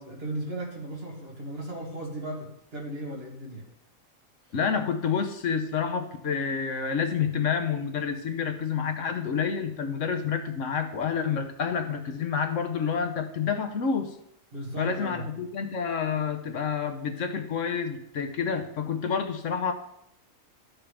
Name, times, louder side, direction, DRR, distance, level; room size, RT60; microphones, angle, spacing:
voice 1, 0.1-3.7 14.5-15.3, right 1 dB, 45° right, -3 dB, 2.4 m, -36 dB
voice 2, 4.5-14.1 14.8-19.7, left 6 dB, 70° left, 6 dB, 1.2 m, -28 dB
13.5 x 6.0 x 3.4 m, 0.77 s
omnidirectional pair, 1.4 m